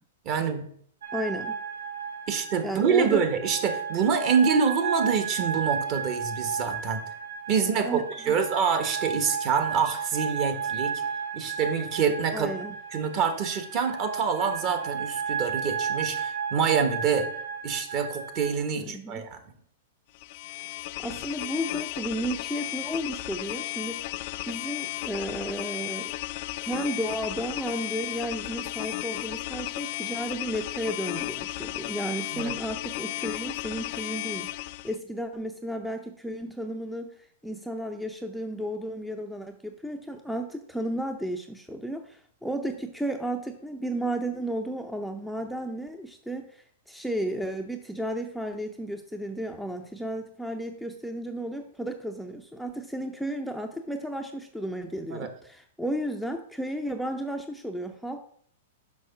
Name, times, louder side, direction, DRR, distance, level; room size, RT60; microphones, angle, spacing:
voice 1, 0.2-0.7 2.3-7.0 7.5-10.9 11.3-12.5 12.9-17.3 17.6-19.4 32.3-32.5 55.1-55.3, right 6 dB, 40° right, 8 dB, 1.4 m, -26 dB
drone suspence or tension, 1.0-18.5, right 6 dB, 90° right, 1.2 m, -33 dB
voice 2, 1.1-1.6 2.6-3.2 7.8-8.3 12.3-12.7 18.8-19.3 21.0-24.1 24.4-26.1 26.6-37.1 37.4-58.2, right 1 dB, ahead, 5 dB, 0.6 m, -33 dB
sound 1, 20.2-35.0, left 17 dB, 50° left, 0.3 m, -34 dB
6.3 x 5.4 x 5.9 m, 0.62 s
hypercardioid pair, 125°, 0 cm